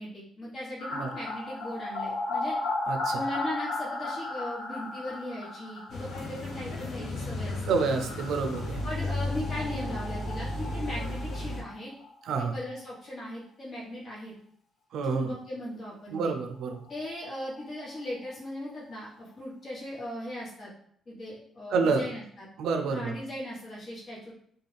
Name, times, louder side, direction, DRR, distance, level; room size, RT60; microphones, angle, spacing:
voice 1, 0.0-2.6 3.1-7.6 8.8-11.9 12.5-14.3 15.0-16.3 16.9-20.7 21.1-22.5 22.9-24.3, left 1 dB, 45° left, -6 dB, 1.2 m, -38 dB
sound 1, 0.8-12.4 12.7-12.8 13.0-13.1 16.2-16.3 16.5-16.6 16.9-18.6 18.9-19.0, left 2 dB, 85° left, 1.0 m, -36 dB
voice 2, 2.9-3.2 7.7-8.8 12.2-12.6 14.9-15.3 16.1-16.8 21.7-22.0 22.6-23.1, right 4 dB, 75° right, 6 dB, 0.4 m, -28 dB
sound 2, 5.9-11.6, left 2 dB, 65° left, 0.6 m, -34 dB
2.4 x 2.3 x 3.2 m, 0.64 s
cardioid pair, 90°, 0 cm